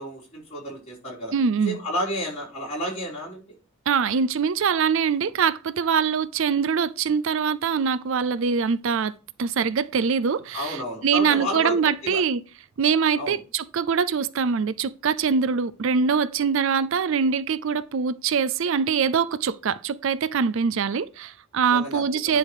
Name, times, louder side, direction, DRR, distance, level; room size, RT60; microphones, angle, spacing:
voice 1, 0.0-1.3 1.6-3.4 10.5-12.2 13.2-13.4 21.7-22.4, equal, 30° left, 5.1 m, -31 dB
voice 2, 1.3-1.8 3.9-12.4 12.8-22.4, right 6 dB, 60° right, 0.4 m, -23 dB
10.5 x 3.5 x 6.3 m
head